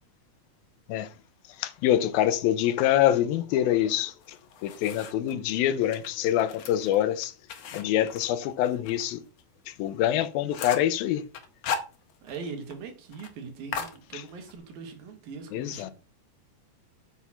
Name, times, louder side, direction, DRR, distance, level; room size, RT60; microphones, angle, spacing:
voice 1, 1.6-4.4 4.6-7.3 7.7-9.2 9.7-11.2 14.1-14.2 15.5-15.9, left 12 dB, 90° left, 2.6 m, -25 dB
sound 1, 4.2-5.3 5.8-9.0 9.4-9.5 9.9-10.0 10.2-11.0 11.3-12.4 12.7-12.8 13.1-13.3 13.7-14.6, left 6 dB, 55° left, 2.0 m, -37 dB
voice 2, 12.2-15.9, right 5 dB, 75° right, 3.6 m, -41 dB
8.3 x 6.2 x 5.7 m
omnidirectional pair, 4.2 m